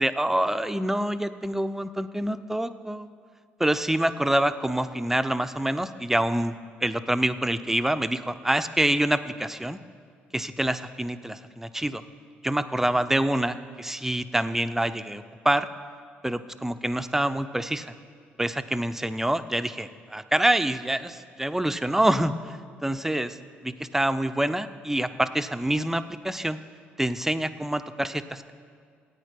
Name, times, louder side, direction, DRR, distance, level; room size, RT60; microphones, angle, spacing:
voice 1, 0.0-3.1 3.6-6.5 6.8-9.8 10.3-12.0 12.4-15.7 16.2-18.0 18.4-23.4 23.6-26.6 27.0-28.5, right 1 dB, 5° right, 11 dB, 0.6 m, -26 dB
13.5 x 9.3 x 5.8 m, 2.1 s
figure-of-eight pair, 45°, 6 cm